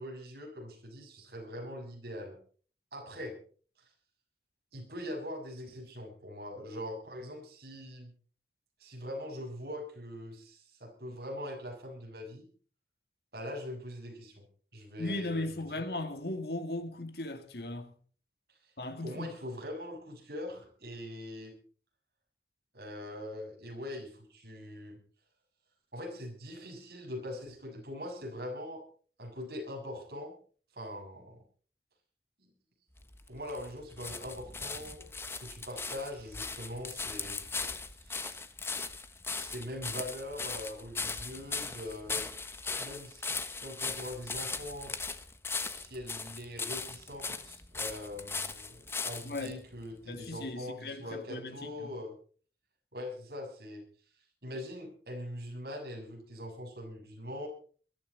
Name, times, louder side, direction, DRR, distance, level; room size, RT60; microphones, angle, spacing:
voice 1, 0.0-2.4 2.9-3.4 4.7-8.1 8.8-12.5 13.3-14.5 14.7-15.8 19.0-21.5 22.7-25.0 25.9-28.8 29.2-30.3 30.7-31.4 32.4-32.5 33.3-35.0 35.4-38.4 39.3-42.3 42.8-43.3 43.6-45.0 45.7-52.1 52.9-53.9 54.4-57.5, left 1 dB, 65° right, 6.8 m, -42 dB
voice 2, 15.0-17.9 18.8-19.3 49.3-49.6 50.1-51.9, left 2 dB, 65° left, 2.1 m, -37 dB
sound 1, 33.0-49.5 50.2-50.3, left 4 dB, 15° left, 1.1 m, -38 dB
22.0 x 13.0 x 4.0 m
head